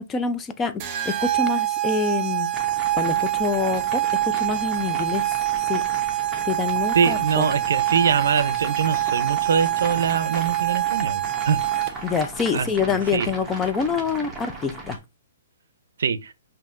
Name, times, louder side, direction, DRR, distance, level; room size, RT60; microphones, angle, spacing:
voice 1, 0.0-2.5 2.9-5.2 5.7-5.8 6.5-7.4 12.0-15.0, left 5 dB, 15° left, 0.3 m, -26 dB
sound 1, 0.8-12.2, right 14 dB, 30° right, 0.6 m, -25 dB
sound 2, 2.5-15.0, right 2 dB, 5° right, 1.0 m, -37 dB
voice 2, 6.9-11.6 12.5-13.3 16.0-16.3, right 6 dB, 75° right, 0.5 m, -23 dB
5.4 x 2.7 x 2.4 m
hypercardioid pair, 150°, 0 cm